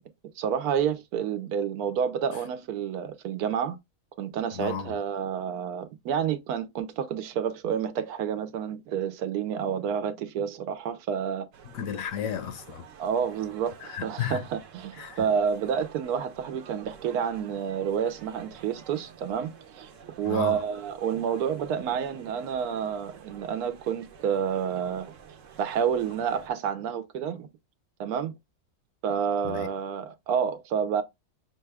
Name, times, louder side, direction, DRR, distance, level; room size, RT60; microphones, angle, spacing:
voice 1, 0.4-3.8 4.2-11.5 13.0-13.7 14.0-19.5 19.8-19.9 20.2-25.1 25.6-27.5 28.0-28.3 29.0-31.0, right 7 dB, 85° right, 1.1 m, -29 dB
voice 2, 4.5-5.0 11.6-12.9 13.8-14.4 15.0-15.3 20.2-20.6 29.4-29.7, left 8 dB, 70° left, 1.0 m, -33 dB
sound 1, 11.5-26.5, right 7 dB, 65° right, 1.0 m, -50 dB
6.0 x 2.3 x 3.3 m
omnidirectional pair, 1.6 m